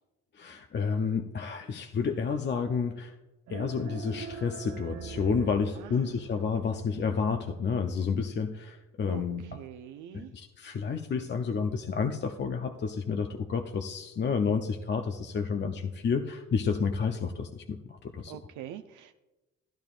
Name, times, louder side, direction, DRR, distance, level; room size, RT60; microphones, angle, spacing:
voice 1, 0.3-3.1 3.5-9.5 10.1-18.4, left 5 dB, 35° left, 5 dB, 0.6 m, -30 dB
sound 1, 3.5-6.7, right 6 dB, 60° right, 0.9 m, -42 dB
voice 2, 5.8-6.2 9.1-10.3 15.6-15.7 18.3-19.1, right 11 dB, 85° right, 7 dB, 0.5 m, -44 dB
13.0 x 10.5 x 2.4 m, 1.1 s
cardioid pair, 90°, 30 cm